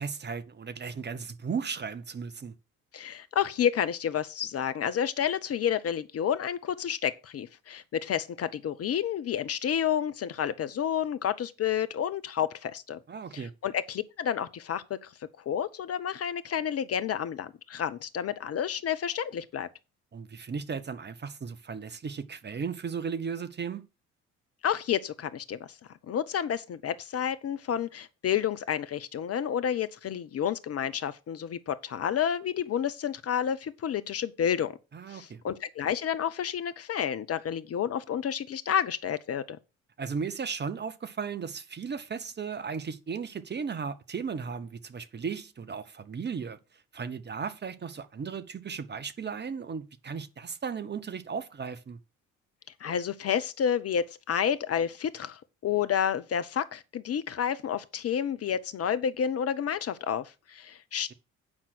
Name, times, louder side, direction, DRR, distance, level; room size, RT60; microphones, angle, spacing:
voice 1, 0.0-2.5 13.1-13.5 20.1-23.8 34.9-35.4 40.0-46.6 46.9-52.0, right 6 dB, 25° right, 1.0 m, -36 dB
voice 2, 2.9-13.0 13.3-15.1 15.5-19.7 24.6-25.7 26.1-34.8 35.1-39.6 52.8-61.1, left 8 dB, 35° left, 0.8 m, -30 dB
8.9 x 5.7 x 6.3 m
figure-of-eight pair, 50°, 41 cm